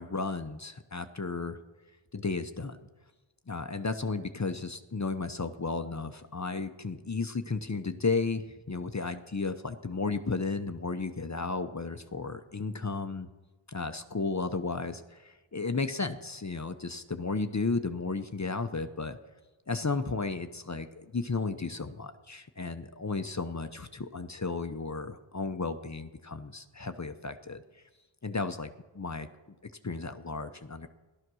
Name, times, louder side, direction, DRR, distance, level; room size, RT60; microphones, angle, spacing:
voice 1, 0.0-1.6 2.1-2.8 3.5-13.3 13.7-19.2 19.7-27.6 28.2-29.3 29.8-30.9, left 4 dB, 35° left, 9 dB, 0.8 m, -34 dB
14.5 x 12.0 x 6.2 m, 1.2 s
wide cardioid pair, 55°, 49 cm